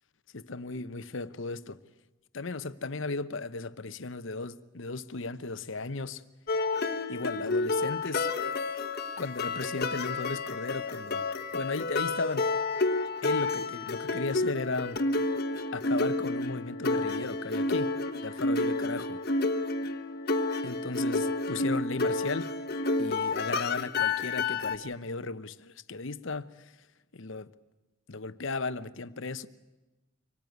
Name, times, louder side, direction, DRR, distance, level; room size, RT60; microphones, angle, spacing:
voice 1, 0.3-1.8 2.3-6.2 7.1-8.3 9.2-11.3 11.5-12.5 13.2-15.0 15.7-17.9 18.2-19.2 20.6-22.5 23.0-26.7 27.1-27.5 28.1-29.5, left 3 dB, 60° left, 0.8 m, -35 dB
sound 1, 6.5-24.8, left 3 dB, 45° left, 1.2 m, -30 dB
25.0 x 19.0 x 9.3 m
head